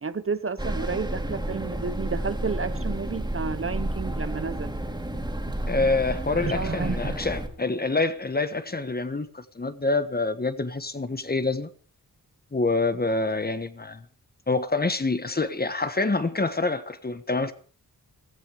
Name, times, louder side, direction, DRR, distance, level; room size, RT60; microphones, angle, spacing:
voice 1, 0.0-4.8 6.3-7.2, right 5 dB, 40° right, 1.1 m, -31 dB
sound 1, 0.6-7.5, right 1 dB, 10° right, 3.0 m, -31 dB
voice 2, 5.7-11.7 12.5-14.0 14.5-17.5, left 3 dB, 25° left, 1.3 m, -26 dB
16.0 x 14.5 x 5.0 m
wide cardioid pair, 90°, 34 cm